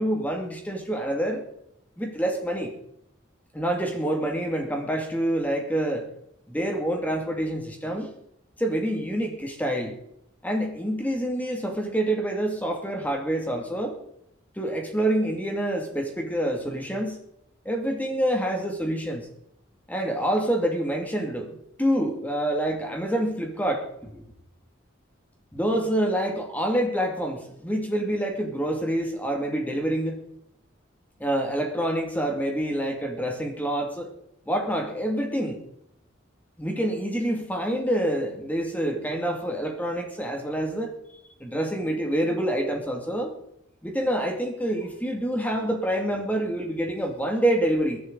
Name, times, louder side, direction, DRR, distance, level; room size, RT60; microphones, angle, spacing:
voice 1, 0.0-1.4 2.0-2.7 3.5-6.1 6.5-8.1 8.6-10.0 10.4-14.0 14.6-17.2 17.7-19.2 19.9-21.5 21.8-24.2 25.5-30.2 31.2-34.1 34.5-35.6 36.6-40.9 41.4-43.3 43.8-48.0, right 1 dB, 10° left, 2 dB, 2.2 m, -27 dB
23.0 x 11.0 x 3.9 m, 0.75 s
head